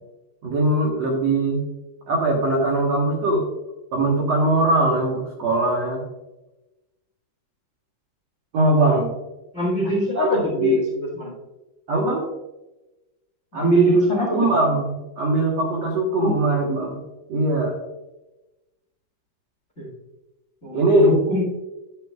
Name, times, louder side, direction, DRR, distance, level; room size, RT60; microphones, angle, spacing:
voice 1, 0.4-1.6 2.1-3.5 3.9-6.0 8.5-9.1 10.1-10.8 11.9-12.2 13.5-17.0 17.3-17.8 20.7-21.2, right 2 dB, 90° right, -1 dB, 1.4 m, -21 dB
voice 2, 9.5-10.8 11.1-11.3 13.5-14.5 16.2-16.3 19.8-19.9 20.6-21.4, equal, 30° left, -2 dB, 1.2 m, -23 dB
11.0 x 9.4 x 2.4 m, 1.0 s
omnidirectional pair, 5.2 m